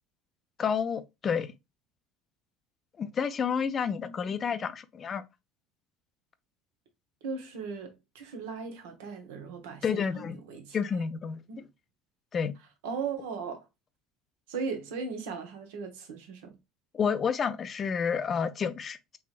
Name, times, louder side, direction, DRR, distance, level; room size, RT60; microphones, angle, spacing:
voice 1, 0.6-1.5 3.0-5.2 9.8-10.4 10.7-11.4 12.3-12.5 16.9-19.2, left 6 dB, 40° left, 0.5 m, -30 dB
voice 2, 3.8-4.4 7.2-10.8 11.5-11.6 12.8-13.7 14.5-16.6, right 5 dB, 80° right, 0.9 m, -38 dB
3.5 x 3.1 x 2.4 m
hypercardioid pair, 70°, 0 cm